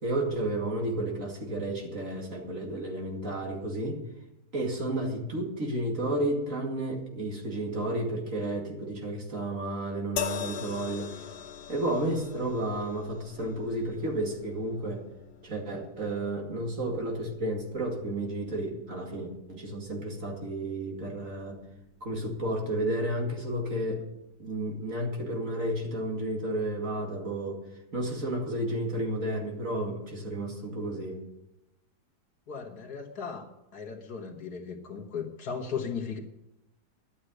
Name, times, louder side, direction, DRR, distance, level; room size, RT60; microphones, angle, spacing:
voice 1, 0.0-4.0 4.5-11.2 11.7-15.0 15.4-21.6 22.0-24.0 24.4-27.6 27.9-31.2, right 1 dB, 55° right, 1 dB, 2.7 m, -32 dB
sound 1, 10.2-23.5 24.4-24.6, left 9 dB, 90° left, 1.5 m, -43 dB
voice 2, 32.5-33.5 33.7-36.2, left 6 dB, 70° left, 3 dB, 2.1 m, -36 dB
11.5 x 8.7 x 7.9 m, 0.90 s
omnidirectional pair, 1.7 m